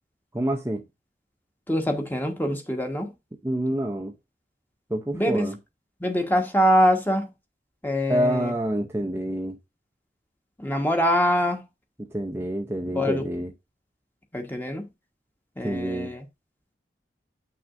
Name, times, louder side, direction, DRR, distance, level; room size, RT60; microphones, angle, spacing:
voice 1, 0.3-0.8 3.4-4.1 4.9-5.6 8.1-9.6 12.1-13.5 15.6-16.1, right 1 dB, 15° right, 0.6 m, -27 dB
voice 2, 1.7-3.1 5.1-5.5 6.0-7.3 7.8-8.5 10.6-11.6 12.9-13.3 14.3-14.8 15.6-16.2, equal, 10° left, 1.3 m, -24 dB
8.5 x 6.0 x 2.5 m
head